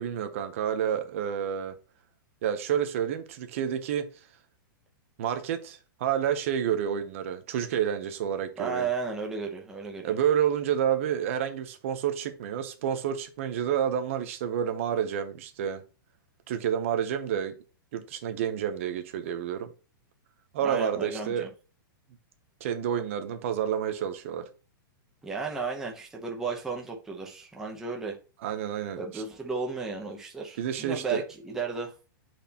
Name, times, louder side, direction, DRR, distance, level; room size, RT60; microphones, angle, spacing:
voice 1, 0.0-1.8 2.4-4.1 5.2-8.9 10.0-15.8 16.5-17.6 17.9-19.7 20.5-21.5 22.6-24.5 28.4-29.2 30.6-31.2, right 9 dB, 35° right, 0.7 m, -29 dB
voice 2, 8.6-10.1 20.6-21.5 25.2-28.2 28.9-31.9, right 4 dB, 5° right, 0.7 m, -34 dB
8.8 x 4.3 x 2.8 m
hypercardioid pair, 175°, 12 cm